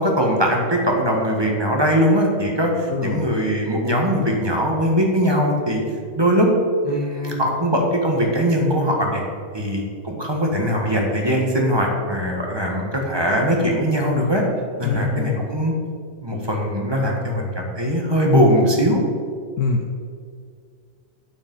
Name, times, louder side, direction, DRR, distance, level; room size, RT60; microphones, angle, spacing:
voice 1, 0.0-5.8 6.1-6.5 6.8-9.2 9.5-14.4 14.8-15.7 16.2-19.0, equal, 15° right, 0 dB, 1.5 m, -20 dB
voice 2, 2.9-3.3 14.8-15.5 19.6-20.0, left 4 dB, 80° left, 2 dB, 1.3 m, -25 dB
8.8 x 7.3 x 5.6 m, 2.1 s
omnidirectional pair, 1.6 m